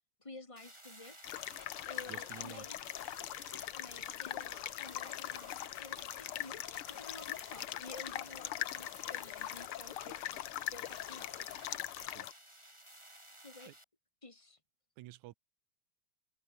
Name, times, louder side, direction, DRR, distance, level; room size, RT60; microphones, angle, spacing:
voice 1, 0.2-1.4 1.9-2.8 3.3-10.4 10.7-11.9 13.4-13.7 14.2-14.6, left 2 dB, 15° left, 1.5 m, -52 dB
sound 1, 0.6-13.8, right 1 dB, 10° right, 4.6 m, -56 dB
sound 2, 1.2-12.3, left 13 dB, 65° left, 1.4 m, -41 dB
voice 2, 2.1-2.6 12.1-12.3 13.7-13.8 15.0-15.3, right 17 dB, 85° right, 2.2 m, -50 dB
omnidirectional pair, 3.3 m